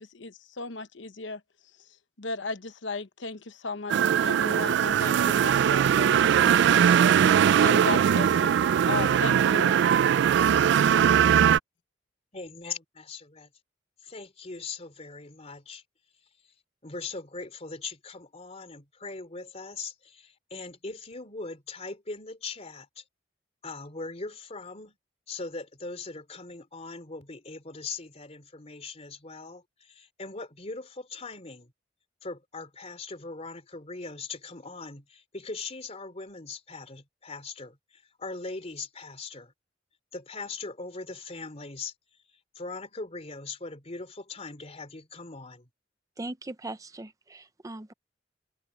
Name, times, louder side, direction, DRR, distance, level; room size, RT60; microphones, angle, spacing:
voice 1, 0.0-1.4 2.2-7.0 7.5-8.5 8.9-9.8, left 4 dB, 75° left, 1.0 m, -36 dB
sound 1, 3.9-11.6, right 8 dB, 65° right, 0.3 m, -21 dB
voice 2, 12.3-13.5 14.0-15.8 16.8-23.0 23.6-25.0 25.3-31.7 32.2-39.5 40.1-41.9 42.5-45.7, left 3 dB, 35° left, 3.1 m, -40 dB
voice 3, 46.2-47.9, right 2 dB, 20° right, 0.6 m, -39 dB
head